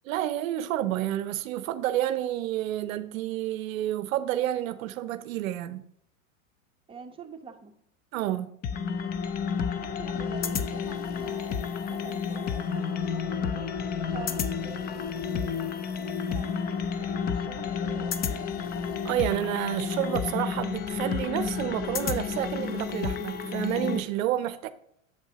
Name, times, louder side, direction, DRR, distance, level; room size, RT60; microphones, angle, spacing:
voice 1, 0.1-5.8 8.1-8.5 19.0-24.7, right 13 dB, 75° right, 0.6 m, -29 dB
voice 2, 6.9-7.8 9.8-13.7 14.1-18.6, right 6 dB, 10° right, 1.0 m, -46 dB
sound 1, 8.6-24.0, left 6 dB, 25° left, 0.4 m, -31 dB
8.0 x 8.0 x 2.8 m
hypercardioid pair, 115°, 41 cm